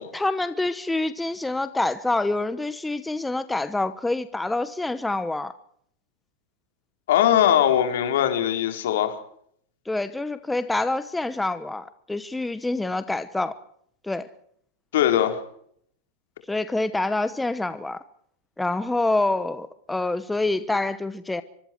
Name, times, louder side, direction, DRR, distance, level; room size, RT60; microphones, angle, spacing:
voice 1, 0.1-5.5 9.9-13.6 14.0-14.3 16.5-18.0 18.6-21.4, left 2 dB, 5° left, 1.1 m, -26 dB
voice 2, 7.1-9.1 14.9-15.4, left 11 dB, 75° left, 4.3 m, -20 dB
24.5 x 24.0 x 4.7 m
supercardioid pair, 145°, 0 cm